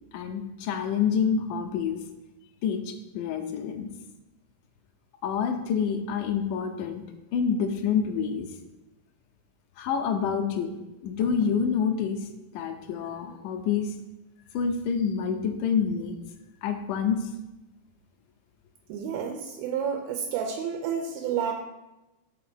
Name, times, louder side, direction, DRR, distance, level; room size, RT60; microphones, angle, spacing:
voice 1, 0.1-2.0 2.6-3.9 5.2-7.0 7.3-8.5 9.8-10.7 11.0-12.3 12.5-13.9 14.5-16.2 16.6-17.3, left 6 dB, 80° left, 6 dB, 1.9 m, -27 dB
voice 2, 18.9-21.5, right 7 dB, 85° right, 3 dB, 2.4 m, -30 dB
5.5 x 4.2 x 5.9 m, 1.0 s
omnidirectional pair, 4.1 m